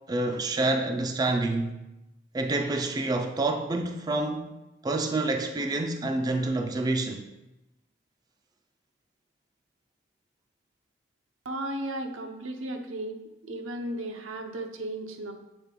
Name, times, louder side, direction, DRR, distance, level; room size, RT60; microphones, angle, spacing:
voice 1, 0.1-1.8 2.3-4.5 4.8-7.2, right 2 dB, 20° right, 0.3 m, -28 dB
voice 2, 11.4-13.2 13.4-15.3, right 1 dB, 85° right, 0.7 m, -35 dB
7.1 x 3.7 x 3.7 m
head